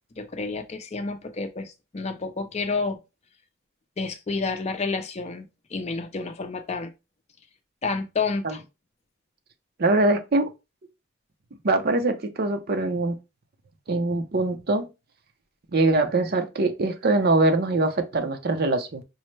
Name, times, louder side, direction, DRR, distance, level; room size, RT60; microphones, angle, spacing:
voice 1, 0.2-3.0 4.0-5.5 5.7-6.9 7.8-8.6, left 4 dB, 35° left, 0.5 m, -29 dB
voice 2, 9.8-10.5 11.6-13.2 13.9-14.9 15.7-19.0, right 2 dB, 50° right, 0.6 m, -23 dB
5.3 x 2.1 x 3.1 m
head